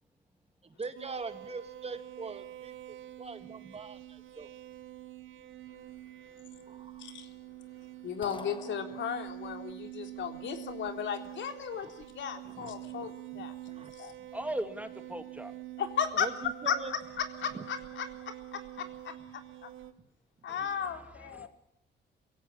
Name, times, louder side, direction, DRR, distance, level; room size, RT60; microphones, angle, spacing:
voice 1, 0.6-4.5 6.7-7.1 11.8-11.9 12.4-13.9 16.1-16.9 17.5-17.7, right 4 dB, 30° right, 8 dB, 2.4 m, -43 dB
sound 1, 0.9-19.9, right 15 dB, 85° right, 1.5 m, -46 dB
voice 2, 8.0-14.1 15.8-16.3 16.7-16.8 17.2-18.1 18.5-19.1 19.6-19.7 20.4-21.5, left 8 dB, 70° left, 5 dB, 3.8 m, -35 dB
sound 2, 8.2-9.5, left 3 dB, 25° left, 1.7 m, -47 dB
voice 3, 14.3-15.5 20.5-21.5, right 1 dB, 5° right, 7 dB, 2.5 m, -39 dB
23.5 x 16.5 x 9.8 m, 0.72 s
cardioid pair, 90°, 20 cm